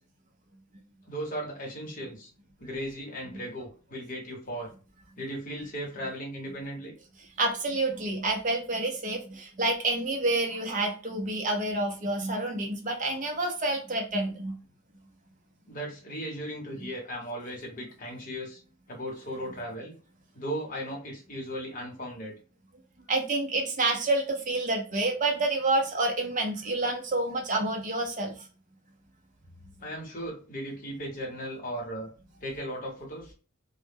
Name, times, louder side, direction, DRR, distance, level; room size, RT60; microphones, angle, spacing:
voice 1, 1.1-2.3 2.6-4.7 5.2-6.9 15.7-18.6 18.9-19.9 20.3-22.3 29.8-32.1 32.4-33.3, equal, 40° left, -1 dB, 0.9 m, -37 dB
voice 2, 7.4-14.5 16.8-16.9 23.1-28.3, right 2 dB, 35° right, 2 dB, 0.5 m, -28 dB
2.1 x 2.0 x 3.3 m, 0.36 s
head